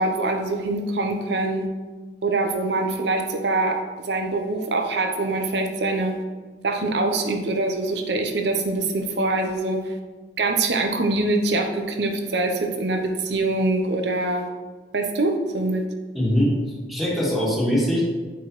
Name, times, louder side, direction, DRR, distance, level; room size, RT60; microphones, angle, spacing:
voice 1, 0.0-1.7 2.2-3.8 4.0-6.1 6.6-9.9 10.4-14.4 14.9-15.8, right 2 dB, 70° right, 4 dB, 0.7 m, -24 dB
voice 2, 16.1-16.5 16.9-18.0, equal, ahead, -5 dB, 1.7 m, -21 dB
7.9 x 4.8 x 3.1 m, 1.3 s
head